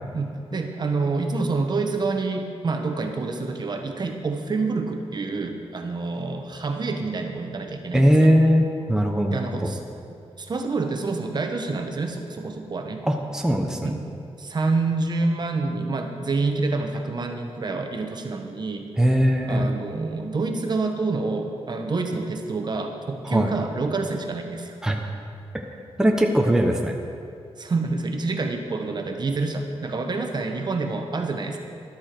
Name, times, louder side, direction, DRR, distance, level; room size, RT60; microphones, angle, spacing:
voice 1, 0.1-8.3 9.3-9.8 10.1-13.1 13.8-14.0 14.4-18.9 19.5-24.8 27.6-31.6, right 3 dB, 45° right, 4 dB, 1.0 m, -27 dB
voice 2, 7.9-9.4 13.1-14.0 19.0-19.7 23.3-23.5 24.8-25.0 26.0-27.0, equal, 5° right, 2 dB, 1.0 m, -20 dB
13.0 x 12.0 x 4.5 m, 2.4 s
wide cardioid pair, 135°, 11 cm